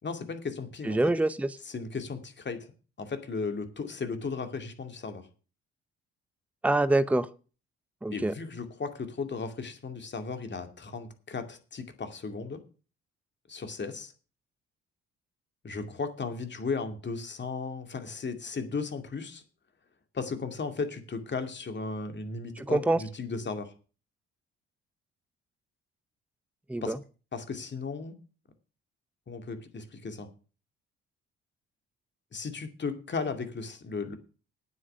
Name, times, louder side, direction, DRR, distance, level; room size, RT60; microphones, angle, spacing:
voice 1, 0.0-1.0 1.6-2.7 3.0-5.3 8.1-12.6 13.5-14.1 15.6-19.4 20.1-23.7 26.8-26.9 27.3-28.1 29.3-30.3 32.3-34.2, left 4 dB, 35° left, 7 dB, 2.4 m, -35 dB
voice 2, 0.9-1.5 6.6-7.3 8.0-8.3 22.6-23.0 26.7-27.0, right 2 dB, 5° right, 14 dB, 0.7 m, -25 dB
9.6 x 8.1 x 6.8 m, 0.37 s
hypercardioid pair, 50°, 30 cm